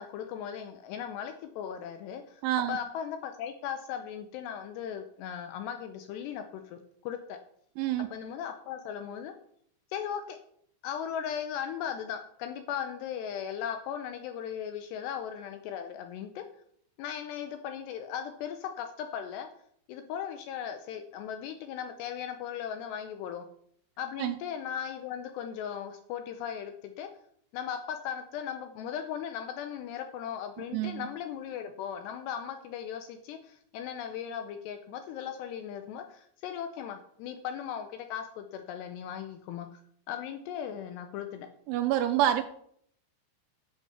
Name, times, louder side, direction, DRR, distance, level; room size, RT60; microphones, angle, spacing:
voice 1, 0.0-2.4 2.7-7.4 8.1-9.3 9.9-10.4 10.8-16.4 17.0-19.5 19.9-23.5 24.0-27.1 27.5-39.8 40.1-41.5, left 8 dB, 80° left, 7 dB, 2.6 m, -37 dB
voice 2, 2.4-2.8 7.8-8.1 24.2-24.4 30.7-31.1 41.7-42.4, right 12 dB, 85° right, 6 dB, 3.0 m, -27 dB
11.5 x 7.0 x 5.7 m, 0.65 s
omnidirectional pair, 5.5 m